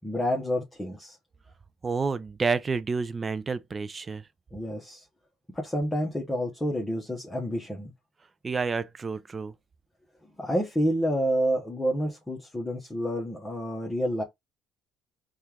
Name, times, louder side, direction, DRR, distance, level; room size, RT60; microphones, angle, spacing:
voice 1, 0.0-1.1 4.5-5.0 5.5-7.9 10.4-14.2, equal, 10° left, 1.0 m, -29 dB
voice 2, 1.8-4.2 8.4-9.5, right 4 dB, 30° right, 0.4 m, -29 dB
4.4 x 2.4 x 3.4 m
supercardioid pair, 90°, 0 cm